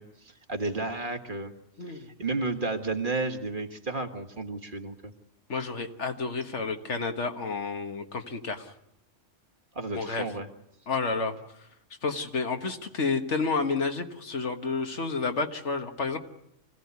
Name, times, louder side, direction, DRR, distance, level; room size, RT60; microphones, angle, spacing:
voice 1, 0.0-1.5 1.8-5.1 9.7-10.5, right 3 dB, 45° right, 5 dB, 1.7 m, -32 dB
voice 2, 1.8-2.1 5.5-8.7 10.0-10.3 10.9-11.4 12.0-16.2, left 4 dB, 65° left, 6 dB, 1.8 m, -30 dB
25.0 x 16.5 x 9.5 m, 0.81 s
omnidirectional pair, 1.3 m